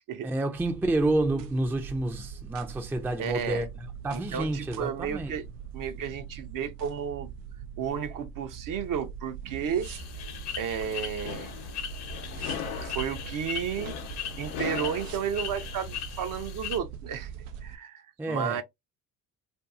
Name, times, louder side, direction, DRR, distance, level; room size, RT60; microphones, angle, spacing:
voice 1, 0.2-3.7 4.0-5.3 18.2-18.6, right 2 dB, 5° right, 0.4 m, -29 dB
sound 1, 0.5-17.8, right 7 dB, 90° right, 0.6 m, -42 dB
voice 2, 3.2-3.7 4.1-5.5 5.7-7.3 7.8-9.9 10.5-11.6 12.8-14.0 14.4-17.3 17.6-18.6, right 8 dB, 45° right, 0.6 m, -32 dB
sound 2, 9.8-16.8, left 8 dB, 60° left, 0.9 m, -39 dB
sound 3, 10.8-16.0, left 7 dB, 85° left, 0.8 m, -40 dB
2.6 x 2.5 x 2.4 m
supercardioid pair, 70°, 45 cm